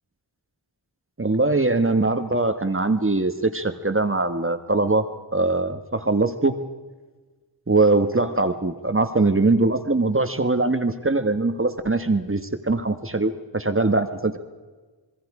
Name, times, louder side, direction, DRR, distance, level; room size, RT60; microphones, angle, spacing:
voice 1, 1.2-5.1 5.3-6.6 7.7-14.4, right 2 dB, 30° right, 8 dB, 1.3 m, -22 dB
26.5 x 21.5 x 4.9 m, 1.3 s
wide cardioid pair, 70°, 44 cm